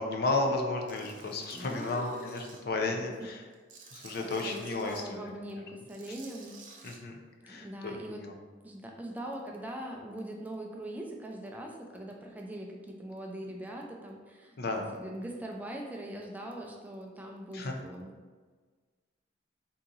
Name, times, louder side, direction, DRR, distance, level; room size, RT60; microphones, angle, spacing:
voice 1, 0.0-3.4 3.9-5.2 6.8-7.2 7.4-8.3 14.6-14.9 17.5-17.7, left 2 dB, 60° left, 2 dB, 0.5 m, -33 dB
Tools, 0.9-2.6 3.1-5.0 5.8-7.0, right 4 dB, 45° right, 0.6 m, -52 dB
voice 2, 1.5-2.3 2.8-3.3 4.2-6.6 7.5-8.2 8.6-14.5 14.9-18.2, right 1 dB, 10° right, 0 dB, 0.4 m, -41 dB
3.8 x 2.8 x 3.8 m, 1.4 s
head